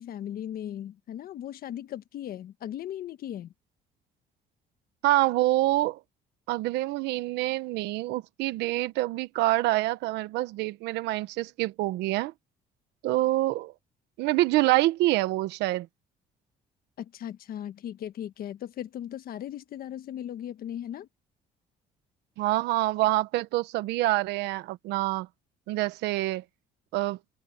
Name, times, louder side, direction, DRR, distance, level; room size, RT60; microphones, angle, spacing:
voice 1, 0.0-3.5 17.0-21.1, left 11 dB, 60° left, 1.4 m, -37 dB
voice 2, 5.0-6.0 6.5-12.3 13.0-13.7 14.2-15.9 22.4-25.3 25.7-26.4 26.9-27.2, right 17 dB, 90° right, 1.1 m, -26 dB
cardioid pair, 110°, 17 cm